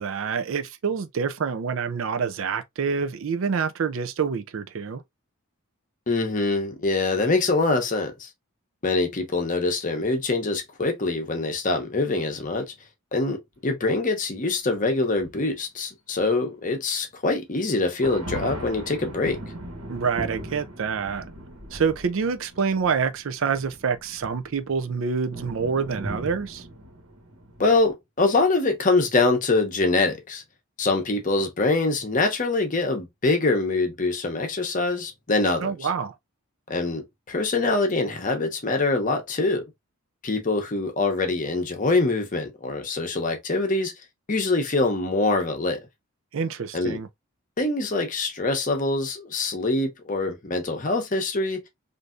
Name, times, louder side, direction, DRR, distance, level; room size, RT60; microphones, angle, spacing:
voice 1, 0.0-5.0 19.9-21.3 21.7-26.6 35.6-36.1 46.3-47.1, right 5 dB, 65° right, 0.4 m, -27 dB
voice 2, 6.1-8.3 8.8-12.7 13.1-19.4 27.6-30.4 30.8-35.7 36.7-39.6 40.2-43.9 44.3-45.9 46.7-47.0 47.6-51.6, left 3 dB, 35° left, 0.7 m, -24 dB
sound 1, 15.2-15.4 17.9-27.9, right 1 dB, 85° right, 1.2 m, -39 dB
3.3 x 2.6 x 2.4 m
head